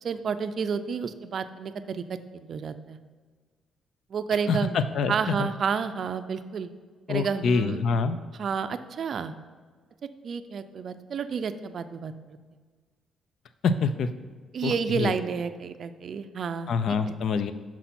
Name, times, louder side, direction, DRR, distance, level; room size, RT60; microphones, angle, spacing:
voice 1, 0.0-3.0 4.1-4.8 5.1-6.7 7.1-7.8 8.3-9.3 10.2-12.4 14.5-17.1, right 6 dB, 55° right, 11 dB, 0.4 m, -30 dB
voice 2, 4.5-5.1 5.4-5.5 7.1-8.2 13.6-14.1 14.6-15.1 16.7-17.5, left 5 dB, 65° left, 11 dB, 0.4 m, -25 dB
5.9 x 5.7 x 4.2 m, 1.5 s
cardioid pair, 90°, 0 cm